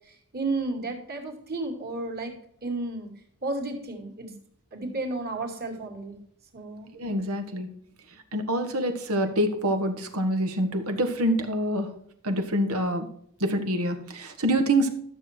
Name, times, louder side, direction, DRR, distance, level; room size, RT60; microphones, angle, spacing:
voice 1, 0.3-2.4 2.6-3.1 3.4-4.3 4.7-6.2 6.5-6.9, right 2 dB, 45° right, 3 dB, 2.7 m, -32 dB
voice 2, 7.0-7.7 8.3-11.9 12.2-13.1 13.4-14.9, right 1 dB, 85° right, 7 dB, 1.6 m, -26 dB
12.5 x 7.0 x 4.4 m, 0.68 s
head